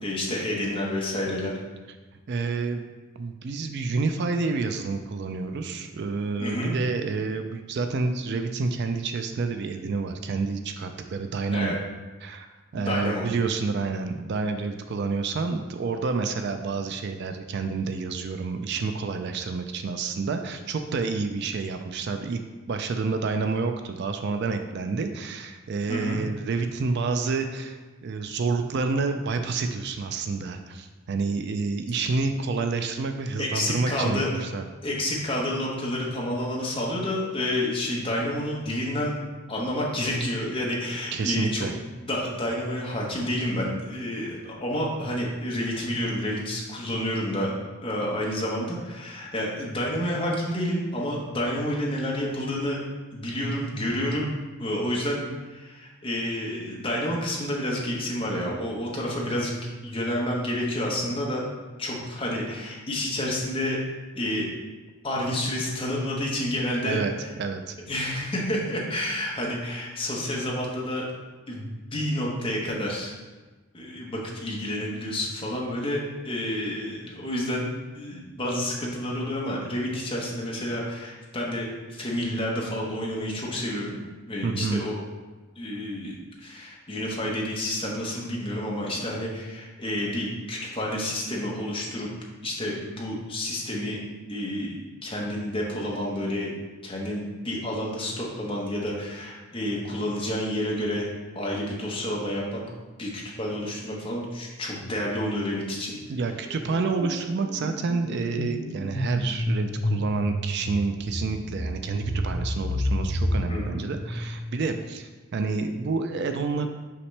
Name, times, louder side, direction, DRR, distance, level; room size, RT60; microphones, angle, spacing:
voice 1, 0.0-1.5 6.4-6.7 11.5-11.7 12.7-13.3 25.9-26.2 33.4-34.4 34.8-39.1 39.5-41.6 42.1-47.5 47.8-52.8 53.1-54.3 54.6-59.6 59.8-61.4 61.8-63.8 64.1-64.5 65.0-67.0 67.9-71.1 71.5-73.1 73.7-77.7 77.9-84.0 84.3-85.0 85.6-92.1 92.4-94.0 94.3-96.5 96.8-102.6 103.0-105.9 113.5-113.8, left 1 dB, 25° left, -3 dB, 1.1 m, -29 dB
voice 2, 2.3-2.9 3.2-11.8 12.2-22.4 22.7-34.6 41.1-41.7 66.8-67.1 67.4-67.8 84.4-84.8 106.1-116.7, right 4 dB, 50° right, 6 dB, 0.4 m, -29 dB
sound 1, 105.3-105.6 105.9-114.6, equal, 85° left, 1.6 m, -30 dB
5.7 x 5.3 x 3.3 m, 1.3 s
head